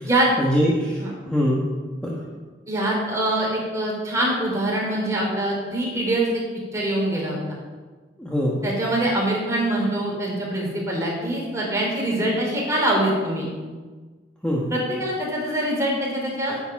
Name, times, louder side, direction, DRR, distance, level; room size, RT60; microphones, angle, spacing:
voice 1, 0.4-1.6 2.0-2.2 8.2-8.6 14.4-14.7, equal, 5° left, -4 dB, 1.2 m, -23 dB
voice 2, 2.7-7.4 8.6-13.5 14.7-16.5, right 1 dB, 15° right, -3 dB, 3.1 m, -24 dB
9.2 x 8.5 x 5.9 m, 1.4 s
head